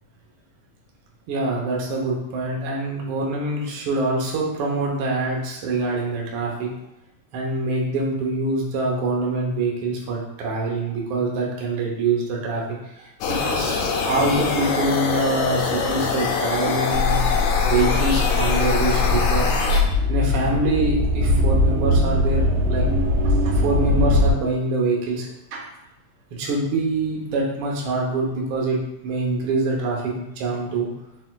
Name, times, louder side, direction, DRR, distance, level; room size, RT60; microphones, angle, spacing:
voice 1, 1.3-6.7 7.3-17.3 17.6-19.5 20.1-22.8 23.2-25.6 26.3-28.8 29.0-30.9, right 2 dB, 70° right, -2 dB, 1.3 m, -25 dB
sound 1, 13.2-19.8, left 5 dB, 75° left, 1.7 m, -24 dB
sound 2, 16.9-24.3, left 2 dB, 85° right, 2.1 m, -21 dB
4.5 x 4.2 x 2.2 m, 0.90 s
omnidirectional pair, 3.5 m